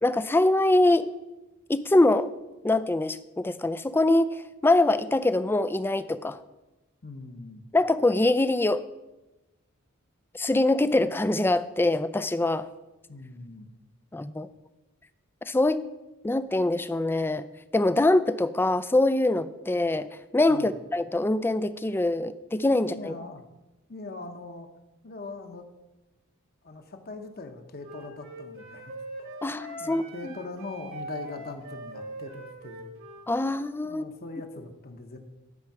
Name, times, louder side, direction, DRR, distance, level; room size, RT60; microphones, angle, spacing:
voice 1, 0.0-1.1 1.7-2.3 2.6-6.4 7.7-8.8 10.3-12.7 14.1-14.5 15.5-15.8 16.2-17.5 17.7-20.1 20.3-23.1 29.4-30.0 33.3-34.0, left 2 dB, 10° left, 13 dB, 0.3 m, -24 dB
voice 2, 7.0-7.6 13.1-13.7 20.5-20.7 22.9-23.4 23.9-24.7 25.0-25.6 26.6-29.0 29.8-32.9 33.8-35.2, left 3 dB, 45° left, 5 dB, 1.0 m, -41 dB
Wind instrument woodwind instrument, 27.8-33.3, right 1 dB, 65° right, 1.6 m, -41 dB
12.0 x 4.6 x 5.9 m, 1.0 s
head